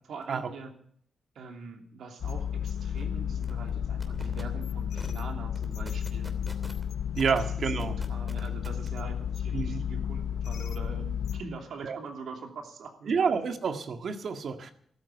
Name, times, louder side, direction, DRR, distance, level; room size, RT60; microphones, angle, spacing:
voice 1, 0.0-0.7 1.3-6.3 7.3-7.4 7.8-13.1, right 4 dB, 85° right, 3 dB, 2.9 m, -43 dB
sound 1, 2.2-11.4, left 8 dB, 85° left, 0.9 m, -32 dB
sound 2, 2.4-2.5 2.8-3.1 3.4-3.7 4.0-4.4 5.0-5.2 5.5-6.8 7.2-7.4 7.8-8.9, right 1 dB, 15° right, 2.8 m, -43 dB
voice 2, 7.2-7.9 9.5-9.8 11.8-12.0 13.1-14.7, right 5 dB, 65° right, 6 dB, 1.8 m, -29 dB
14.0 x 13.0 x 7.1 m, 0.63 s
cardioid pair, 95°, 0 cm